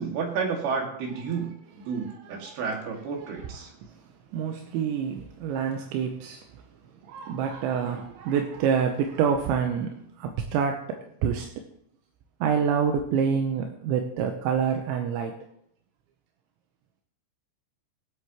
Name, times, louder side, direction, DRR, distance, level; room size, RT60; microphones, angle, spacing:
voice 1, 0.0-1.5 1.9-3.7, right 5 dB, 60° right, 3.9 m, -31 dB
voice 2, 1.9-2.5 3.2-3.3 3.8-4.0 4.3-6.6 7.0-11.5 12.4-15.4, right 7 dB, 80° right, 3.0 m, -27 dB
23.0 x 8.0 x 3.1 m
omnidirectional pair, 5.7 m